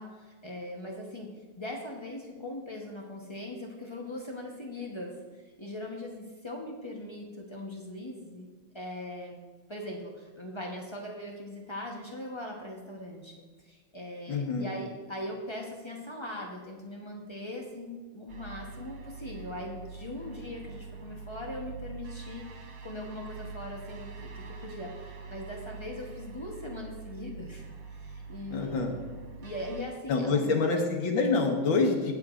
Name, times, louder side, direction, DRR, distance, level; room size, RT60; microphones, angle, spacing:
voice 1, 0.0-5.2 5.6-8.5 8.7-9.4 9.7-22.5 22.8-29.0 29.3-30.6, left 1 dB, 45° left, -1 dB, 0.3 m, -40 dB
voice 2, 14.3-14.7 28.5-28.9 30.1-32.1, left 4 dB, 70° left, 2 dB, 2.0 m, -26 dB
sound 1, 18.3-29.8, right 4 dB, 90° right, 2.1 m, -44 dB
17.0 x 8.1 x 2.5 m, 1.4 s
omnidirectional pair, 2.2 m